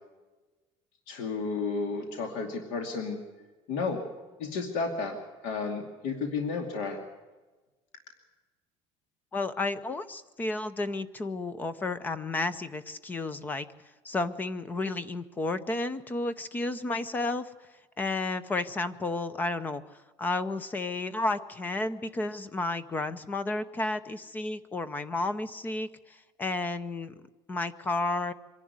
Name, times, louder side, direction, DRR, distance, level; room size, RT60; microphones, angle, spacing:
voice 1, 1.1-3.2 3.7-4.0 4.4-5.2 5.4-7.0, left 4 dB, 75° left, 4 dB, 2.5 m, -32 dB
voice 2, 9.3-13.7 14.0-17.5 18.0-19.8 20.2-27.1 27.5-28.3, left 2 dB, 15° left, 15 dB, 0.6 m, -32 dB
24.5 x 11.5 x 9.5 m, 1.2 s
cardioid pair, 175°, 11 cm